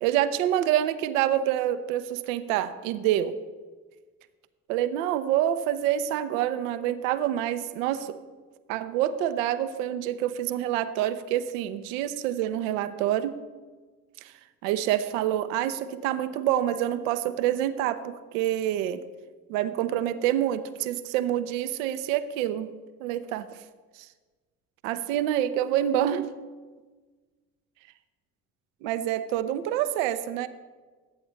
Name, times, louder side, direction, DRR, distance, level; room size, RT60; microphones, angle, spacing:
voice 1, 0.0-3.3 4.7-8.2 8.7-13.4 14.6-19.0 19.5-22.7 23.0-23.5 24.8-26.3 28.8-30.5, right 11 dB, 75° right, 12 dB, 0.6 m, -27 dB
12.5 x 8.6 x 3.1 m, 1.4 s
hypercardioid pair, 50°, 40 cm